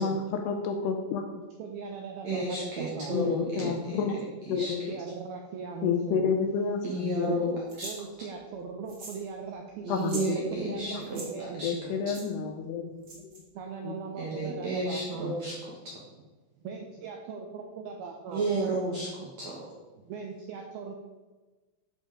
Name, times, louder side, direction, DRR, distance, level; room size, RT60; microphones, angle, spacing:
voice 1, 0.0-1.4 3.1-4.2 4.5-4.9 5.8-7.6 9.9-10.4 10.7-11.0 11.6-13.4 13.8-14.0, left 6 dB, 80° left, 4 dB, 2.5 m, -30 dB
voice 2, 1.6-3.2 4.6-6.3 7.8-11.9 13.5-15.3 16.6-18.5 20.0-20.9, right 5 dB, 80° right, 2 dB, 2.2 m, -39 dB
voice 3, 2.2-4.0 4.5-4.7 6.8-7.9 9.8-11.7 14.2-16.0 18.3-19.7, right 2 dB, 60° right, -4 dB, 1.8 m, -32 dB
sound 1, 7.7-8.0 8.9-9.3 9.5-9.6 9.9-10.3 11.0-11.3 12.1-12.2 13.0-13.4, right 2 dB, 35° right, 2.0 m, -42 dB
13.0 x 5.4 x 4.9 m, 1.2 s
omnidirectional pair, 5.3 m